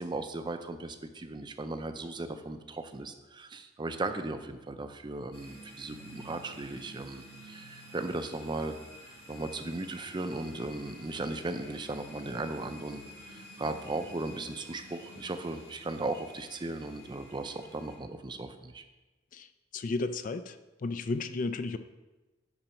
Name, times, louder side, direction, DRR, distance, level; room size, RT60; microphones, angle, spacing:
voice 1, 0.0-8.7 9.3-18.8, right 2 dB, 25° right, 8 dB, 0.5 m, -37 dB
sound 1, 5.3-18.0, equal, 85° left, 2.0 m, -50 dB
voice 2, 19.7-20.6 20.8-21.8, left 3 dB, 45° left, 11 dB, 0.4 m, -33 dB
8.8 x 4.0 x 5.7 m, 1.1 s
head